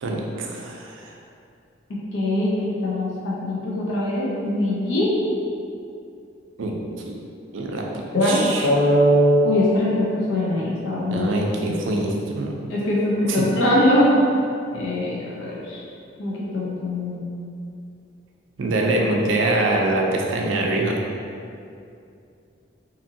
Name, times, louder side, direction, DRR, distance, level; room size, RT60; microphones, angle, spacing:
voice 1, 0.0-1.1 6.6-7.3 7.5-8.7 11.1-12.5 13.3-13.4 18.6-21.0, right 2 dB, 90° right, 0 dB, 0.4 m, -24 dB
voice 2, 2.1-5.2 8.1-11.3 11.6-11.7 12.7-14.1 14.7-15.9 16.2-17.2, left 1 dB, 85° left, -6 dB, 0.5 m, -21 dB
2.8 x 2.5 x 2.6 m, 2.5 s
head